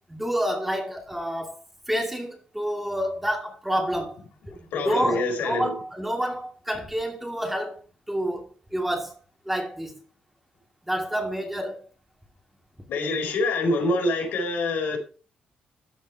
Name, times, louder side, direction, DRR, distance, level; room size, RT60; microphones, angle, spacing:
voice 1, 0.1-1.6 1.9-4.2 4.5-9.1 9.5-9.9 10.9-11.9, equal, 5° right, 2.4 m, -28 dB
voice 2, 4.7-5.8 12.9-15.0, left 2 dB, 80° left, 4.5 m, -25 dB
13.5 x 5.4 x 4.6 m
cardioid pair, 120°, 3 cm